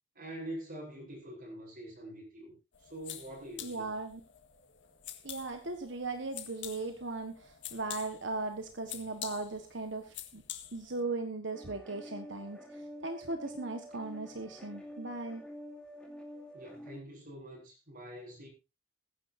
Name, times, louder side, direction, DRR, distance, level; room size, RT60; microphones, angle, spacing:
voice 1, 0.1-2.5 2.8-3.9 16.5-18.5, right 1 dB, 50° right, 5.8 m, -45 dB
sound 1, 2.7-11.0, left 11 dB, 65° left, 1.7 m, -47 dB
voice 2, 3.6-4.2 5.2-10.4 10.7-15.4, right 3 dB, 70° right, 1.4 m, -38 dB
sound 2, 11.5-17.0, left 1 dB, 5° left, 2.4 m, -48 dB
21.0 x 10.0 x 2.7 m
head